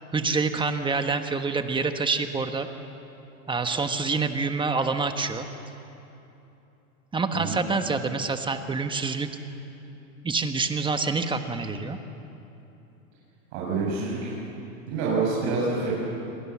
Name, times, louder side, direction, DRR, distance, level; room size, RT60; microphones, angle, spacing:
voice 1, 0.1-2.7 3.5-5.5 7.1-9.3 10.2-12.0, right 4 dB, 10° right, 7 dB, 1.3 m, -26 dB
voice 2, 13.5-14.3 14.9-15.9, right 4 dB, 60° right, -6 dB, 7.3 m, -27 dB
28.5 x 23.0 x 7.4 m, 2.9 s
supercardioid pair, 135°, 40 cm